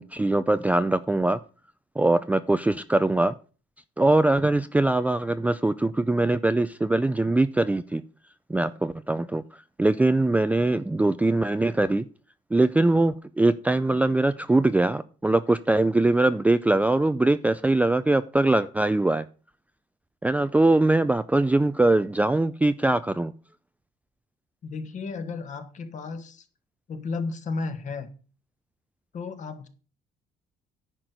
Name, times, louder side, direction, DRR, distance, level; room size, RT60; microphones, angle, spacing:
voice 1, 0.0-1.4 2.0-3.3 4.0-8.0 8.5-9.4 9.8-12.1 12.5-19.2 20.2-23.3, right 2 dB, 10° right, 0.4 m, -22 dB
voice 2, 24.6-26.5 26.9-28.1 29.1-29.7, left 4 dB, 45° left, 1.6 m, -33 dB
10.5 x 4.4 x 7.8 m
cardioid pair, 110°, 17 cm